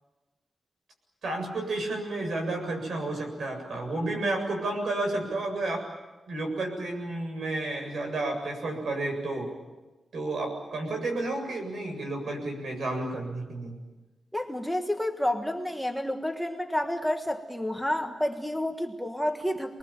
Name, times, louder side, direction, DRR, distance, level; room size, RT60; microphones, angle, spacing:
voice 1, 1.2-5.8 6.3-9.5 10.1-13.8, right 2 dB, 65° right, 3 dB, 7.8 m, -31 dB
voice 2, 14.3-19.8, left 1 dB, ahead, 4 dB, 1.5 m, -30 dB
29.0 x 21.5 x 8.9 m, 1.2 s
wide cardioid pair, 150°, 0 cm